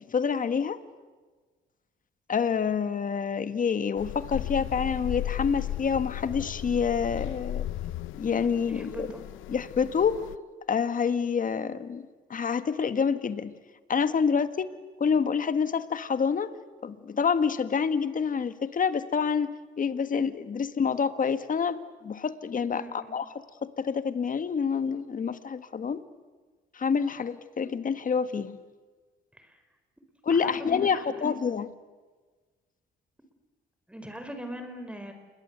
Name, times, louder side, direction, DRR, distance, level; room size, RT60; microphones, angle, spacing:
voice 1, 0.1-0.8 2.3-7.7 8.2-9.1 9.5-10.2 10.7-13.5 13.9-14.7 15.0-16.5 16.8-23.2 23.6-26.0 26.7-28.6 30.2-31.7, left 6 dB, 45° left, 12 dB, 1.7 m, -27 dB
sound 1, 4.0-10.4, left 12 dB, 85° left, 0.8 m, -35 dB
voice 2, 8.7-9.2 22.7-23.1 29.3-29.6 30.3-31.3 33.9-35.1, right 1 dB, 5° right, 6 dB, 4.6 m, -41 dB
28.5 x 22.0 x 8.1 m, 1.4 s
cardioid pair, 90°, 20 cm